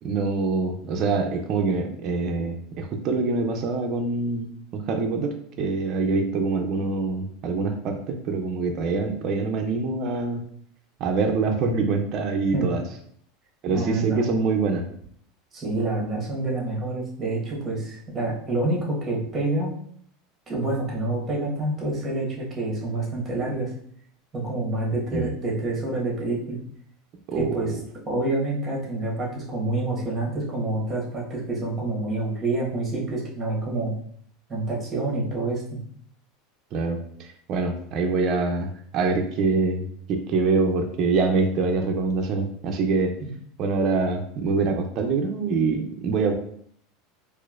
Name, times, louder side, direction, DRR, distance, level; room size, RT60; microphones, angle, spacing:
voice 1, 0.0-10.4 11.0-12.8 13.6-14.9 25.1-25.3 27.3-27.6 36.7-43.1 43.6-46.3, right 4 dB, 40° right, 3 dB, 0.5 m, -25 dB
voice 2, 13.7-14.3 15.5-19.7 20.5-23.7 24.3-26.6 27.3-27.7 28.0-33.9 34.5-35.8, right 2 dB, 20° right, -3 dB, 1.2 m, -27 dB
4.2 x 2.5 x 2.4 m, 0.62 s
supercardioid pair, 140°, 0 cm